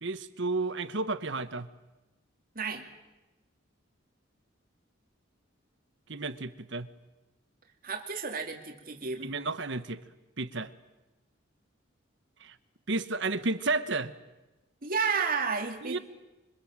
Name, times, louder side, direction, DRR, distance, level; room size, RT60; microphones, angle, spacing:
voice 1, 0.0-1.7 6.1-6.9 9.2-10.0 10.4-10.7 12.4-12.6 12.9-14.1 15.8-16.0, right 3 dB, 65° right, 12 dB, 1.3 m, -32 dB
voice 2, 7.8-9.4 14.8-16.0, right 5 dB, 45° right, 2 dB, 2.8 m, -31 dB
26.5 x 25.0 x 7.5 m, 1.1 s
head